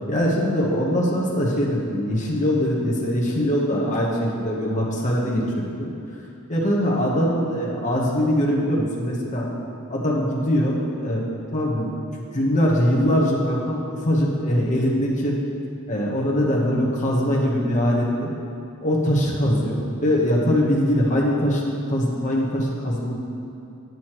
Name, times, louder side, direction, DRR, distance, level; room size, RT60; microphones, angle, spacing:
voice 1, 0.1-5.4 5.7-5.9 6.5-9.5 9.9-11.2 11.5-15.4 15.9-18.3 18.8-23.1, equal, 35° left, -3 dB, 1.0 m, -22 dB
9.3 x 6.2 x 3.0 m, 2.8 s
head